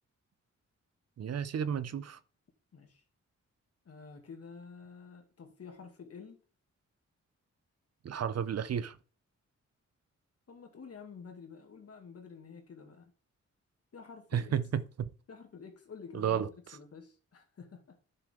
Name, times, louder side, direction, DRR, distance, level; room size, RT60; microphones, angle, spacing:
voice 1, 1.2-2.2 8.0-9.0 14.3-15.1 16.1-16.5, right 8 dB, 60° right, 0.6 m, -32 dB
voice 2, 2.7-3.0 3.8-6.4 10.5-13.1 13.9-14.6 15.3-16.5 16.7-18.0, left 5 dB, 55° left, 2.1 m, -49 dB
11.0 x 7.1 x 3.7 m
wide cardioid pair, 130°, 29 cm